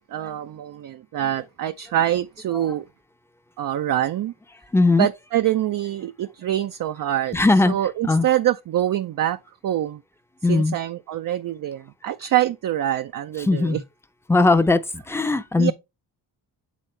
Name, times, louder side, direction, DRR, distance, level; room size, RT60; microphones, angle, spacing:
voice 1, 0.1-2.9 3.6-4.3 5.0-7.4 7.7-10.0 10.5-13.8 15.6-15.7, right 12 dB, 45° right, 0.4 m, -25 dB
voice 2, 4.7-5.1 7.3-7.8 8.0-8.3 10.4-10.7 13.4-13.8 14.3-15.7, left 3 dB, 5° left, 0.6 m, -19 dB
8.3 x 3.6 x 3.2 m
cardioid pair, 70°, 48 cm